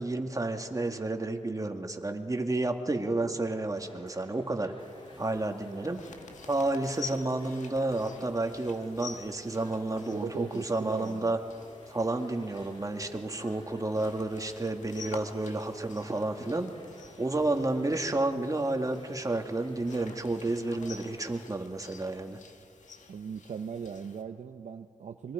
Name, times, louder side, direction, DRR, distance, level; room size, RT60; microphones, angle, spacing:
voice 1, 0.0-4.7 5.2-6.0 6.5-11.4 11.9-16.7 17.2-22.4, right 2 dB, 25° right, 4 dB, 2.2 m, -31 dB
sound 1, 3.7-21.5, left 1 dB, 45° left, 4.0 m, -53 dB
sound 2, 4.8-24.2, left 5 dB, 75° left, 1.7 m, -50 dB
voice 2, 10.1-11.3 23.1-25.3, right 6 dB, 70° right, 6 dB, 0.8 m, -39 dB
25.5 x 23.0 x 5.1 m, 2.2 s
cardioid pair, 55°, 13 cm